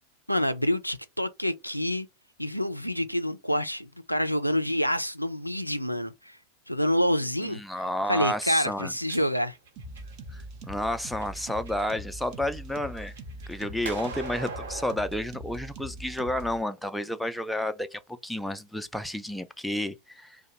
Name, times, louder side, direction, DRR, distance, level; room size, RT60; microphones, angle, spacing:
voice 1, 0.3-2.1 2.4-6.4 6.7-7.6 8.1-9.5, equal, 90° left, 0.3 m, -27 dB
voice 2, 7.4-8.9 10.3-10.4 10.7-13.1 13.5-20.4, left 1 dB, ahead, 0.4 m, -31 dB
sound 1, 8.7-10.4 11.0-11.9 12.3-15.0, right 4 dB, 60° right, 1.1 m, -42 dB
sound 2, 9.8-16.6, right 1 dB, 40° right, 0.8 m, -42 dB
2.8 x 2.1 x 3.9 m
figure-of-eight pair, 90°, 0 cm